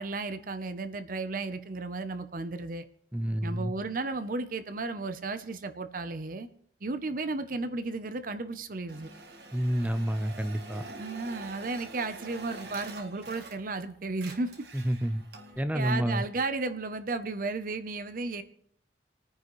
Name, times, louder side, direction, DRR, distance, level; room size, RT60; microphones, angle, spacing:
voice 1, 0.0-2.8 3.4-6.5 6.8-9.1 10.9-14.7 15.7-18.4, right 3 dB, 50° right, 10 dB, 0.7 m, -34 dB
voice 2, 3.1-3.7 9.5-10.8 14.7-15.2 15.6-16.2, equal, 10° right, 10 dB, 0.6 m, -29 dB
sound 1, 8.9-13.8 14.1-15.6, right 3 dB, 65° right, 1.5 m, -46 dB
27.0 x 9.6 x 3.1 m, 0.66 s
head